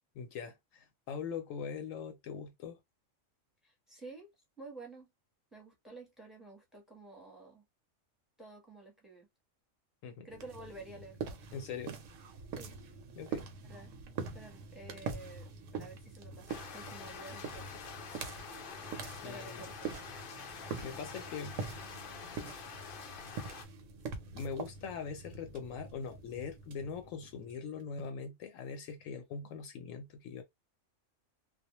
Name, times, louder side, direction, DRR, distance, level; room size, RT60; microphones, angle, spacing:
voice 1, 0.2-2.8 10.0-10.3 11.5-12.0 13.2-13.4 19.2-19.6 20.4-21.6 24.3-30.4, left 6 dB, 85° left, 1.0 m, -42 dB
voice 2, 3.6-4.3 4.6-5.1 5.5-7.6 8.4-9.3 10.2-11.2 12.6-12.8 13.6-13.9 14.3-18.4 19.2-19.7, right 2 dB, ahead, 0.8 m, -51 dB
sound 1, 10.3-27.8, right 5 dB, 75° right, 1.0 m, -44 dB
sound 2, 16.5-23.7, left 6 dB, 60° left, 0.6 m, -47 dB
2.4 x 2.0 x 2.9 m
omnidirectional pair, 1.4 m